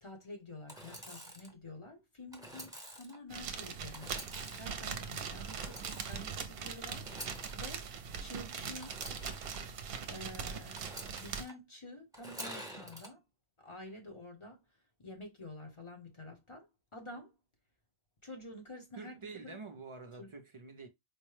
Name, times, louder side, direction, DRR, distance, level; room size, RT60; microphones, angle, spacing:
voice 1, 0.0-7.1 7.5-7.9 8.2-9.0 10.1-10.8 11.2-13.2 13.6-14.6 15.0-17.3 18.2-19.6 20.2-20.3, left 1 dB, 30° left, 0.8 m, -49 dB
Engine / Sawing, 0.7-1.5 2.3-3.2 3.9-4.8 5.5-6.4 7.0-7.7 8.8-9.6 10.7-11.5 12.1-13.1, right 1 dB, 5° right, 0.8 m, -48 dB
sound 1, 3.3-11.5, right 6 dB, 70° right, 0.8 m, -41 dB
voice 2, 19.0-20.9, right 4 dB, 40° right, 0.5 m, -47 dB
4.4 x 2.1 x 3.2 m
omnidirectional pair, 1.0 m